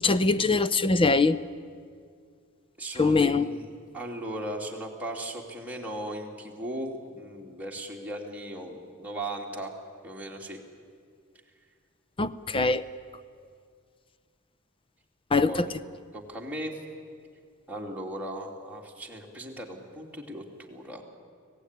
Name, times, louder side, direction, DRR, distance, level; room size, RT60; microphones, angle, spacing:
voice 1, 0.0-1.4 3.0-3.5 12.2-12.8 15.3-15.5, left 3 dB, 25° left, 14 dB, 0.6 m, -22 dB
voice 2, 2.8-3.7 3.9-9.7 10.0-10.6 15.5-15.7 16.1-16.8 17.7-21.0, right 1 dB, 5° right, -2 dB, 2.9 m, -37 dB
25.0 x 17.5 x 9.8 m, 2.1 s
head